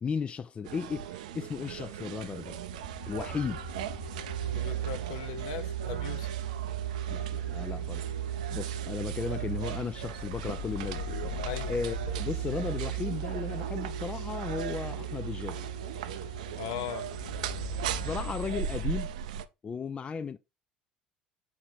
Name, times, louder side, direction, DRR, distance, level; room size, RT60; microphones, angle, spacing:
voice 1, 0.0-2.6 3.1-3.6 7.1-8.1 8.5-15.7 18.0-19.1 19.6-20.4, left 5 dB, 25° left, 0.5 m, -35 dB
sound 1, 0.6-19.5, right 10 dB, 65° right, 0.6 m, -40 dB
sound 2, 2.4-18.9, right 6 dB, 90° left, 1.5 m, -36 dB
voice 2, 4.4-6.4 11.4-11.7 16.6-17.1, left 11 dB, 60° left, 0.9 m, -39 dB
7.2 x 4.9 x 4.1 m
figure-of-eight pair, 65°, 4 cm